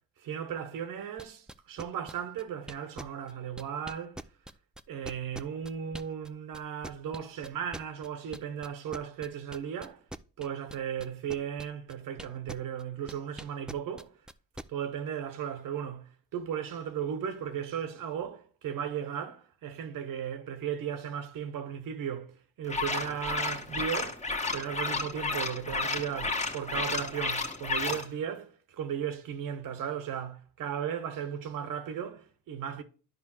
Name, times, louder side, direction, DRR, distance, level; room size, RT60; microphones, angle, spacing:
voice 1, 0.2-4.2 4.9-10.0 10.4-14.1 14.7-24.2 24.5-32.8, right 8 dB, 65° right, 1.3 m, -36 dB
sound 1, 1.2-6.3 6.5-12.8 13.1-14.6, right 1 dB, ahead, 0.4 m, -43 dB
sound 2, 22.7-28.0, left 3 dB, 20° left, 1.2 m, -32 dB
10.5 x 5.1 x 3.0 m
supercardioid pair, 75°, 35 cm